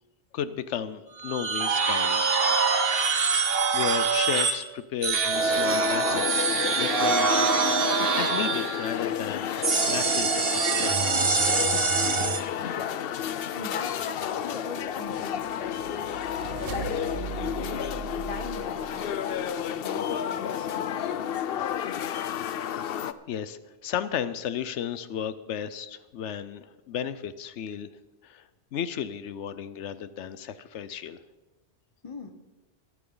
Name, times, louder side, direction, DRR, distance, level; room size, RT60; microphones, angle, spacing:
voice 1, 0.3-2.2 2.8-3.2 3.7-7.5 8.1-12.0 23.3-27.9 28.2-31.2, left 9 dB, 85° left, 14 dB, 1.0 m, -34 dB
sound 1, 1.2-4.6 5.0-9.0 9.6-12.4, right 5 dB, 60° right, 1.3 m, -24 dB
sound 2, 5.3-23.1, left 9 dB, 65° left, 0.7 m, -31 dB
voice 2, 12.6-13.2 13.5-16.1 16.4-21.4 32.0-32.3, left 4 dB, 30° left, 7 dB, 1.1 m, -40 dB
sound 3, 15.2-19.4, right 8 dB, 75° right, 0.9 m, -39 dB
23.5 x 9.3 x 3.9 m, 1.1 s
omnidirectional pair, 1.2 m